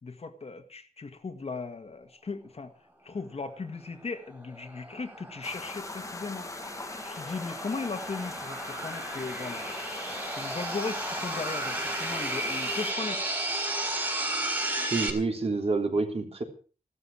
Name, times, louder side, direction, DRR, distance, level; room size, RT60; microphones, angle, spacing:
voice 1, 0.0-2.7 3.0-6.5 7.0-9.6 10.4-13.3, left 4 dB, 45° left, 7 dB, 1.8 m, -37 dB
sound 1, 4.3-15.1, right 1 dB, 15° right, 4.2 m, -34 dB
sound 2, 5.4-12.9, left 2 dB, 20° left, 1.2 m, -41 dB
voice 2, 14.9-16.4, right 3 dB, 40° right, 3 dB, 3.6 m, -28 dB
15.5 x 13.0 x 6.1 m, 0.39 s
wide cardioid pair, 155°, 15 cm